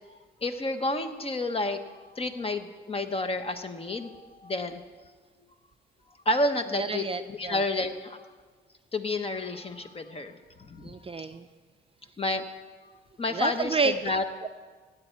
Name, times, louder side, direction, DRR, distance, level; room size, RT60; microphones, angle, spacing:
voice 1, 0.4-1.8 2.2-4.8 6.2-7.0 7.3-8.2 8.9-10.3 10.7-10.9 12.2-12.4 13.2-13.8 14.0-14.2, left 2 dB, 30° left, 8 dB, 1.1 m, -30 dB
voice 2, 6.8-7.6 10.8-11.5 13.3-14.0 14.4-14.5, right 4 dB, 30° right, 9 dB, 0.5 m, -29 dB
16.0 x 9.1 x 4.6 m, 1.4 s
cardioid pair, 90°, 20 cm